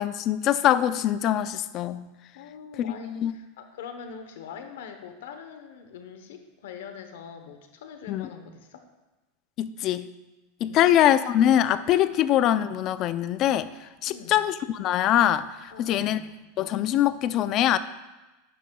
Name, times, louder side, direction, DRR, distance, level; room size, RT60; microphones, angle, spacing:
voice 1, 0.0-2.0 3.1-3.3 8.1-8.3 9.6-10.1 10.6-16.2 16.6-17.8, left 11 dB, 35° left, 14 dB, 0.4 m, -23 dB
voice 2, 2.3-8.9 10.6-11.0 12.1-12.2 14.1-14.4 15.7-16.3, left 6 dB, 85° left, 7 dB, 0.9 m, -43 dB
11.0 x 9.1 x 2.3 m, 1.1 s
supercardioid pair, 150°, 0 cm